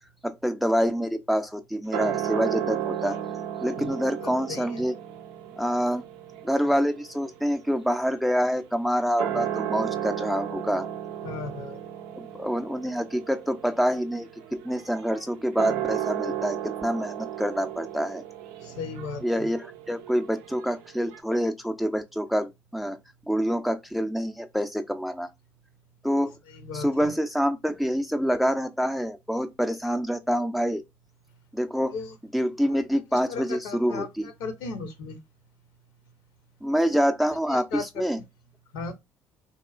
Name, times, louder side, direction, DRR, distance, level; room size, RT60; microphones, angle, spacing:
voice 1, 0.2-3.2 3.6-4.9 5.6-6.0 6.4-10.9 12.1-14.3 14.6-18.2 19.2-23.0 23.3-25.3 26.0-26.4 26.7-30.8 31.5-31.9 32.3-34.3 36.6-38.2, equal, ahead, 0.4 m, -26 dB
sound 1, 1.9-8.6 9.0-21.2, right 10 dB, 80° right, 0.4 m, -35 dB
voice 2, 4.2-4.9 11.2-11.8 18.6-19.5 26.5-27.1 31.9-32.1 33.3-35.2 37.5-37.8 38.7-38.9, left 4 dB, 75° left, 0.7 m, -36 dB
2.9 x 2.3 x 2.4 m
hypercardioid pair, 65°, 7 cm